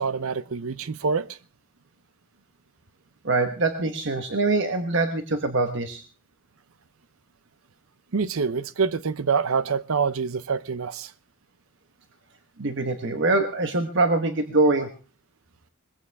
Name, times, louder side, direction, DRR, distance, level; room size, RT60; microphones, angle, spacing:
voice 1, 0.0-1.4 8.1-11.1, right 5 dB, 80° right, 0.7 m, -26 dB
voice 2, 3.2-6.0 12.6-14.9, right 3 dB, 55° right, 1.2 m, -23 dB
20.5 x 15.5 x 3.5 m
head